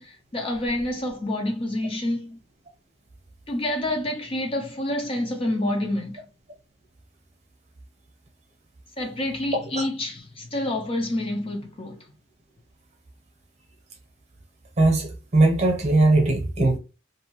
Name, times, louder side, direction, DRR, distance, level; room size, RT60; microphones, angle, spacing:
voice 1, 0.0-2.4 3.5-6.2 9.0-12.0, left 1 dB, 30° left, 0.5 m, -28 dB
voice 2, 14.8-16.8, right 2 dB, 35° right, 0.8 m, -20 dB
2.6 x 2.3 x 2.9 m
head